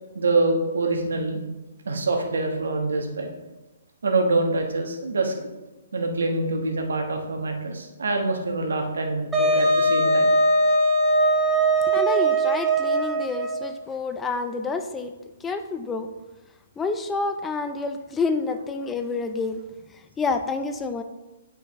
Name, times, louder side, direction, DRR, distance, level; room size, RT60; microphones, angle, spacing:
voice 1, 0.1-1.4 1.9-3.3 4.0-5.3 5.9-10.3 10.7-10.8, right 2 dB, 80° right, 3 dB, 1.3 m, -25 dB
Wind instrument woodwind instrument, 9.3-13.7, right 1 dB, 10° right, 1.0 m, -20 dB
voice 2, 11.9-15.1 15.4-16.1 16.8-19.6 19.9-21.0, left 4 dB, 10° left, 7 dB, 0.5 m, -28 dB
8.4 x 4.8 x 3.6 m, 1.1 s
hypercardioid pair, 140°, 0 cm